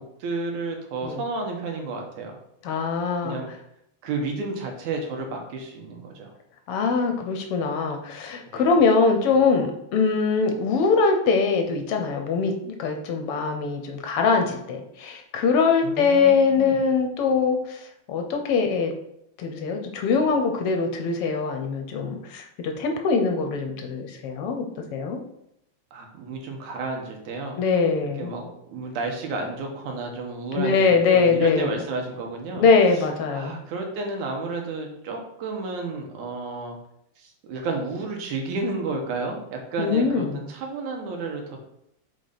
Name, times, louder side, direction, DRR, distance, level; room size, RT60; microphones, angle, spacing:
voice 1, 0.0-2.4 3.2-3.5 4.0-6.3 8.4-8.6 15.8-16.8 25.9-27.6 28.1-32.6 33.3-36.8 37.2-41.6, right 3 dB, 90° right, 1 dB, 2.6 m, -31 dB
voice 2, 2.6-3.4 6.7-17.8 18.1-18.9 19.4-24.7 24.9-25.2 27.6-28.3 30.5-31.7 32.6-33.6 39.8-40.4, left 4 dB, 70° left, 4 dB, 1.5 m, -22 dB
6.5 x 4.1 x 5.0 m, 0.78 s
omnidirectional pair, 3.3 m